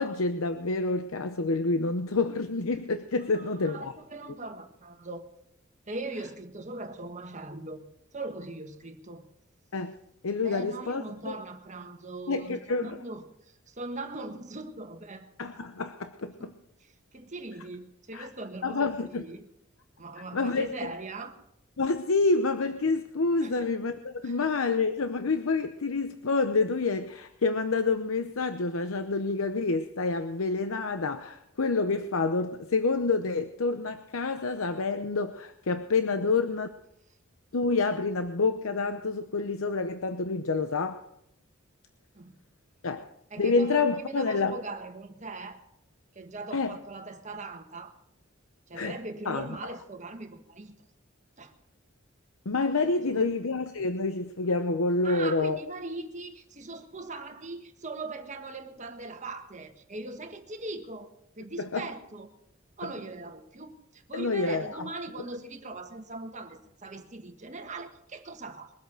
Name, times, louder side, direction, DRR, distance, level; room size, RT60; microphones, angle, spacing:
voice 1, 0.0-3.9 9.7-9.9 10.2-11.4 12.3-13.0 15.4-16.5 18.1-18.3 18.6-19.2 20.3-20.9 21.8-36.7 37.5-41.0 42.8-43.1 43.4-44.6 46.5-46.8 48.7-49.0 49.3-49.5 52.5-55.6 61.6-61.9 64.1-64.9, left 3 dB, 85° left, 8 dB, 0.8 m, -28 dB
voice 2, 3.3-5.2 5.9-7.8 8.1-9.2 10.4-13.2 13.7-15.3 16.4-16.5 17.1-19.5 20.0-21.4 23.4-23.7 24.2-24.5 42.1-42.3 43.3-45.6 46.1-47.9 48.7-50.8 51.4-51.5 53.1-53.3 55.0-61.1 61.4-62.3 62.8-68.7, right 2 dB, 35° right, 6 dB, 1.5 m, -40 dB
22.0 x 8.2 x 6.1 m, 0.76 s
head